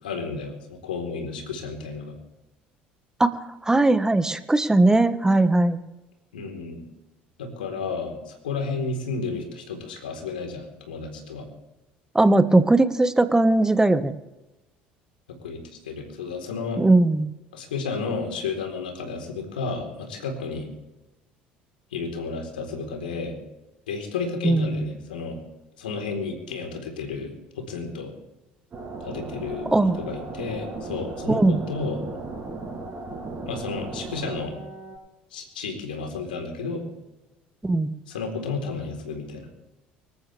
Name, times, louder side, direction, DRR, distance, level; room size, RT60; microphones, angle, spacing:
voice 1, 0.0-2.2 6.3-6.8 7.4-11.5 15.3-16.8 17.5-20.7 21.9-23.4 23.9-25.4 25.8-28.1 29.0-29.7 30.0-32.0 33.5-34.6 35.3-36.9 38.1-39.5, left 4 dB, 85° left, 3 dB, 4.1 m, -32 dB
voice 2, 3.6-5.8 12.1-14.1 16.8-17.3 24.4-24.9 29.7-30.0 31.3-31.6 37.6-37.9, right 2 dB, 10° right, 11 dB, 1.5 m, -19 dB
sound 1, 28.7-35.0, right 3 dB, 35° right, 6.9 m, -36 dB
25.5 x 14.0 x 3.5 m, 1.0 s
hypercardioid pair, 65°, 5 cm